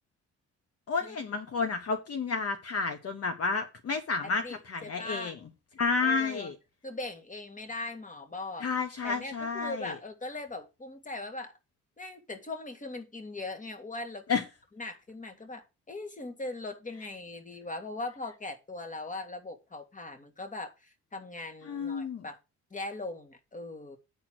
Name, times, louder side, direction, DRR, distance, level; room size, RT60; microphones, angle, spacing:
voice 1, 0.9-5.3 5.8-6.5 8.6-9.9 14.3-14.4 21.7-22.2, left 4 dB, 50° left, 1.2 m, -31 dB
voice 2, 4.2-5.3 6.0-6.5 6.8-8.7 9.0-11.5 12.0-14.3 14.8-22.4 22.7-24.0, left 2 dB, 25° left, 2.0 m, -40 dB
9.5 x 4.5 x 6.2 m
cardioid pair, 90°, 30 cm